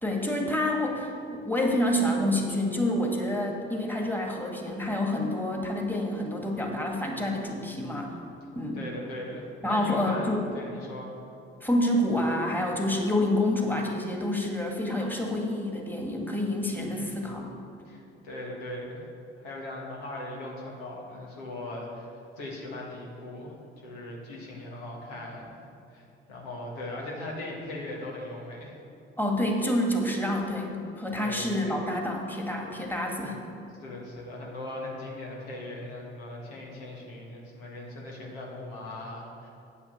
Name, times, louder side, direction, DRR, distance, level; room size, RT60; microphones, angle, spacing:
voice 1, 0.0-8.1 8.6-8.8 9.6-10.5 11.6-17.5 29.2-33.4, left 1 dB, 5° left, 0 dB, 1.9 m, -28 dB
voice 2, 8.7-11.1 16.9-17.3 17.8-19.0 19.4-25.5 25.9-28.7 31.2-31.7 33.8-39.5, left 1 dB, 85° left, -3 dB, 1.8 m, -39 dB
8.9 x 5.8 x 7.1 m, 2.6 s
hypercardioid pair, 50°, 30 cm